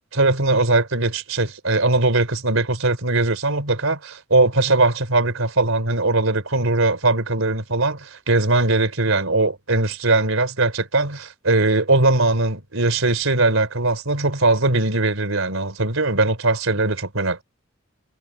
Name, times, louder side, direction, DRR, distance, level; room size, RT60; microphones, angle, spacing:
voice 1, 0.1-17.4, right 2 dB, 80° right, 3.6 m, -20 dB
head